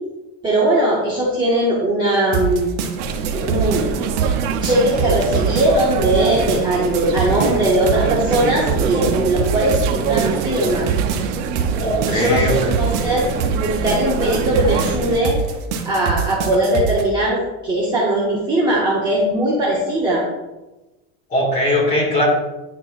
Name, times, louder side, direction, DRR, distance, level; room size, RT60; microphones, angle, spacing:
voice 1, 0.4-2.7 3.3-3.9 4.4-10.9 12.0-15.3 15.8-20.2, right 1 dB, 10° right, -7 dB, 0.8 m, -19 dB
sound 1, 2.3-17.0, right 6 dB, 50° right, 0.8 m, -24 dB
sound 2, 3.0-15.2, right 6 dB, 85° right, 0.8 m, -25 dB
voice 2, 11.8-12.7 21.3-22.3, left 1 dB, 25° left, -4 dB, 2.1 m, -19 dB
9.6 x 4.4 x 2.5 m, 1.1 s
cardioid pair, 180°, 36 cm